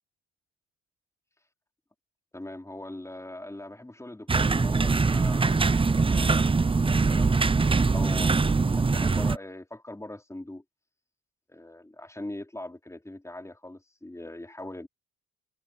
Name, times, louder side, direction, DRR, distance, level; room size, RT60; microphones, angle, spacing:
voice 1, 2.3-7.5 7.8-10.6 11.5-14.9, left 1 dB, 10° left, 4.4 m, -41 dB
sound 1, 4.3-9.4, right 4 dB, 15° right, 0.7 m, -23 dB
cardioid pair, 90°, 30 cm